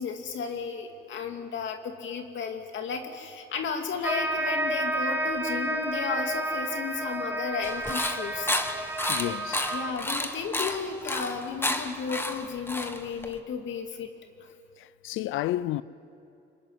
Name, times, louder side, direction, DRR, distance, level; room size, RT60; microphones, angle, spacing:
voice 1, 0.0-8.5 9.7-14.1, left 6 dB, 70° left, 2.5 m, -33 dB
sound 1, 4.0-9.9, right 1 dB, 10° right, 1.7 m, -31 dB
sound 2, 7.6-13.4, left 1 dB, 10° left, 1.7 m, -31 dB
voice 2, 9.1-9.7 14.8-15.8, left 14 dB, 85° left, 0.6 m, -31 dB
25.0 x 22.0 x 9.7 m
cardioid pair, 90°, 20 cm